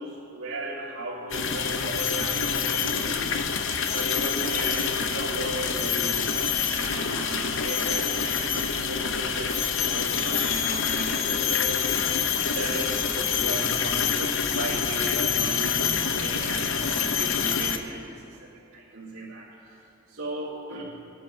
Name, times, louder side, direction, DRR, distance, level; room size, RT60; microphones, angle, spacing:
voice 1, 0.0-3.3 3.9-12.0 12.5-19.8 20.1-20.8, right 2 dB, 75° right, -12 dB, 3.8 m, -36 dB
sound 1, 1.3-17.8, left 7 dB, 60° left, 0.7 m, -26 dB
sound 2, 3.6-6.2 6.6-8.4 9.2-11.8, left 4 dB, 75° left, 1.7 m, -43 dB
22.5 x 11.0 x 3.8 m, 2.9 s
head